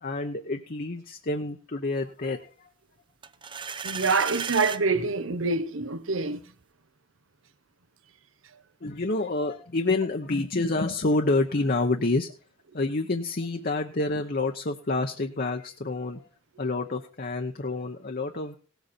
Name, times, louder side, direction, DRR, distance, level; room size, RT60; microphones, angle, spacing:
voice 1, 0.0-2.7 8.8-12.3 12.7-16.3 16.6-18.6, left 2 dB, 45° left, 0.9 m, -28 dB
sound 1, 3.2-4.8, right 6 dB, 25° right, 0.6 m, -34 dB
voice 2, 3.8-6.4, right 4 dB, 70° right, 1.1 m, -26 dB
18.0 x 8.1 x 4.3 m
head